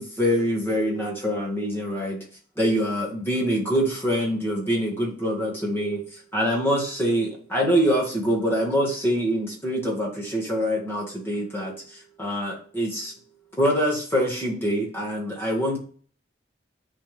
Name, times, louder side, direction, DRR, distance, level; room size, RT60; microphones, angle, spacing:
voice 1, 0.0-2.2 2.6-6.0 6.3-13.1 13.6-15.8, equal, 10° left, -2 dB, 2.0 m, -25 dB
9.9 x 3.9 x 3.4 m, 0.44 s
head